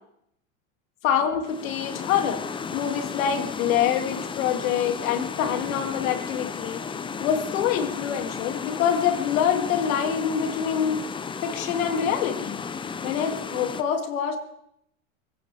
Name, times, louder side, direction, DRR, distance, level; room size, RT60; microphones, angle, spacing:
voice 1, 1.0-2.4 2.7-6.8 7.2-11.0 11.4-12.6 13.0-14.4, left 8 dB, 75° left, 5 dB, 2.4 m, -25 dB
sound 1, 1.4-13.8, left 5 dB, 10° left, 0.5 m, -34 dB
24.5 x 15.0 x 3.4 m, 0.74 s
supercardioid pair, 120°, 41 cm